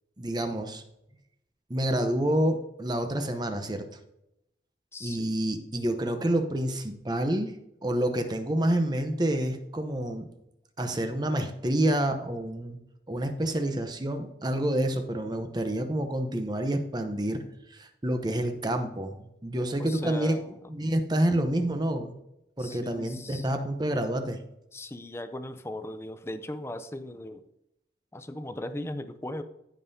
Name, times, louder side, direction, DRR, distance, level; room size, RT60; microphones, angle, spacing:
voice 1, 0.2-0.8 1.7-3.9 5.0-7.5 7.8-10.3 10.8-12.8 13.1-17.4 17.7-20.4 20.7-22.1 22.6-24.4, right 1 dB, 25° right, 6 dB, 0.8 m, -28 dB
voice 2, 4.9-5.3 19.8-20.7 22.6-23.5 24.7-27.4 28.1-29.4, left 1 dB, 15° left, 10 dB, 0.5 m, -38 dB
15.0 x 5.4 x 2.7 m, 0.83 s
head